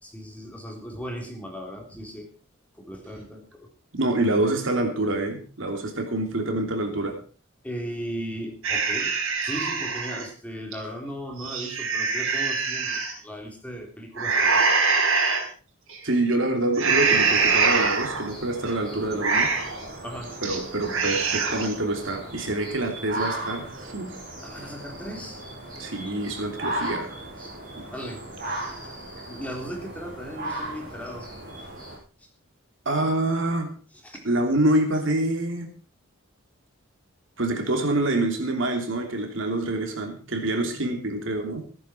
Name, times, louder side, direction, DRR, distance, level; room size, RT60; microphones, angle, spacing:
voice 1, 0.0-2.3 2.8-3.7 7.6-9.1 9.4-14.9 20.0-20.4 24.4-25.4 25.8-26.1 27.4-27.5 27.9-28.2 28.7-29.0 29.3-31.3 32.2-32.3 34.0-34.2, equal, 5° left, 0 dB, 3.6 m, -37 dB
voice 2, 3.9-7.2 16.0-19.5 20.4-24.2 25.8-27.1 27.7-27.9 32.8-33.7 34.2-35.7 37.4-41.6, right 2 dB, 65° right, 4 dB, 3.2 m, -26 dB
sound 1, 8.6-10.2 10.7-10.8 11.3-13.1 14.2-15.4 15.9-16.2 16.7-18.3 18.7-18.8 19.1-19.8 20.2-20.6 20.8-21.8, right 4 dB, 85° right, 4.5 m, -24 dB
sound 2, 16.9-32.0, right 1 dB, 40° right, 7.8 m, -36 dB
15.5 x 14.0 x 4.5 m, 0.38 s
head